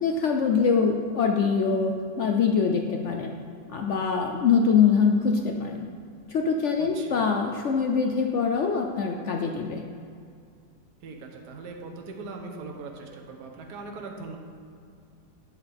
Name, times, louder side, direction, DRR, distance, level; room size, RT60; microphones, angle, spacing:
voice 1, 0.0-3.3 3.7-5.9 6.3-9.8, left 5 dB, 75° left, 3 dB, 0.6 m, -24 dB
voice 2, 6.8-7.2 11.0-14.4, right 3 dB, 70° right, 1 dB, 1.5 m, -40 dB
11.5 x 7.4 x 3.5 m, 2.3 s
omnidirectional pair, 1.9 m